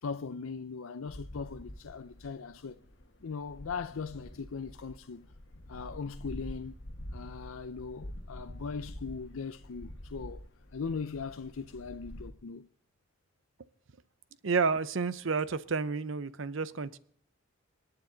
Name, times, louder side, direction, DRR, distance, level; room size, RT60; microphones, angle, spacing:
voice 1, 0.0-2.8 3.2-5.3 5.7-6.7 7.1-10.4 10.7-12.7, left 5 dB, 80° left, 0.5 m, -39 dB
sound 1, 1.1-12.3, left 1 dB, 55° left, 1.4 m, -47 dB
voice 2, 14.4-17.0, right 4 dB, 65° right, 0.7 m, -30 dB
26.0 x 9.8 x 3.9 m
head